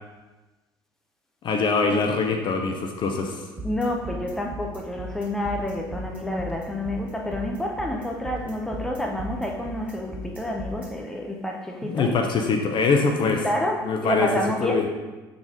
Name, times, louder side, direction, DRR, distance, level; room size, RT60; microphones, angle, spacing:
voice 1, 1.4-3.4 11.8-13.4 13.8-14.3 14.6-14.9, left 4 dB, 40° left, 3 dB, 0.8 m, -23 dB
voice 2, 3.6-12.2 13.2-14.8, left 1 dB, 5° left, 0 dB, 0.9 m, -29 dB
sound 1, 3.6-10.9, left 1 dB, 10° right, 2.1 m, -36 dB
7.0 x 4.1 x 3.9 m, 1.2 s
figure-of-eight pair, 60°, 12 cm